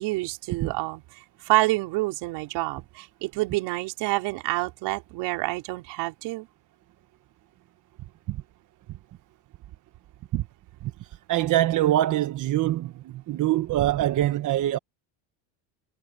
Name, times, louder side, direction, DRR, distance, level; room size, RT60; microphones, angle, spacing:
voice 1, 0.0-6.5, right 20 dB, 70° right, 3.9 m, -28 dB
voice 2, 10.8-14.8, right 14 dB, 45° right, 1.3 m, -24 dB
cardioid pair, 130°, 43 cm